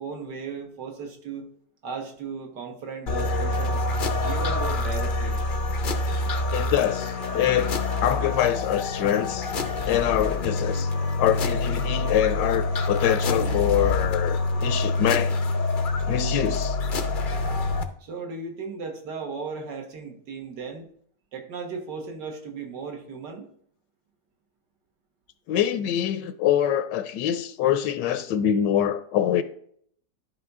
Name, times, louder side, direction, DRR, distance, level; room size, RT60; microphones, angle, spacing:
voice 1, 0.0-1.5 1.8-3.9 4.2-5.4 18.0-20.9 21.3-23.5, right 4 dB, 70° right, 1.9 m, -36 dB
sound 1, 3.1-17.8, left 2 dB, 60° left, 0.5 m, -26 dB
voice 2, 6.5-7.7 8.0-9.5 9.8-10.9 11.2-15.3 16.1-16.8 25.5-29.4, left 10 dB, 80° left, 1.2 m, -24 dB
11.0 x 5.5 x 3.6 m
omnidirectional pair, 1.9 m